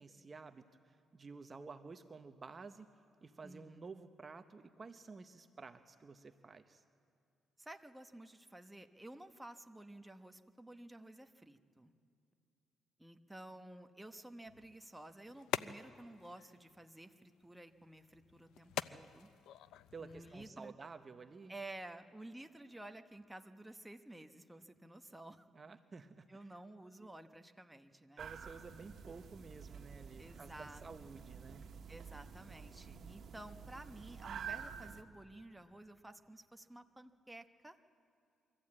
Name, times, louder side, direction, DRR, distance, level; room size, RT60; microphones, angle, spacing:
voice 1, 0.0-3.0 3.2-6.8 19.9-21.5 25.5-26.5 27.0-27.1 28.2-31.7, right 4 dB, 35° right, 9 dB, 0.8 m, -52 dB
voice 2, 3.4-4.0 7.6-11.9 13.0-19.3 20.0-20.7 21.5-25.5 26.3-28.3 30.2-30.8 31.9-37.8, right 1 dB, 10° right, 7 dB, 1.0 m, -53 dB
sound 1, 14.4-20.5, left 11 dB, 85° left, 0.4 m, -46 dB
sound 2, 28.2-35.0, right 7 dB, 60° right, 1.4 m, -49 dB
24.5 x 14.0 x 8.7 m, 2.5 s
cardioid pair, 90°, 0 cm